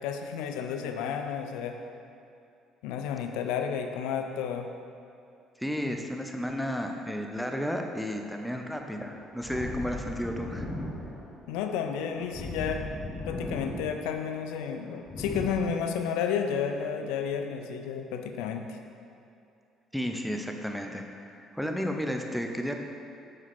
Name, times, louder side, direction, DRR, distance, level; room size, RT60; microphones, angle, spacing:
voice 1, 0.0-1.8 2.8-4.7 11.5-12.8 13.2-18.8, left 7 dB, 60° left, 5 dB, 0.6 m, -31 dB
voice 2, 5.6-10.7 19.9-21.0 21.3-22.8, equal, ahead, 3 dB, 0.9 m, -32 dB
sound 1, 8.4-15.5, left 1 dB, 20° left, 1.4 m, -38 dB
9.6 x 7.5 x 3.5 m, 2.5 s
figure-of-eight pair, 50°, 0 cm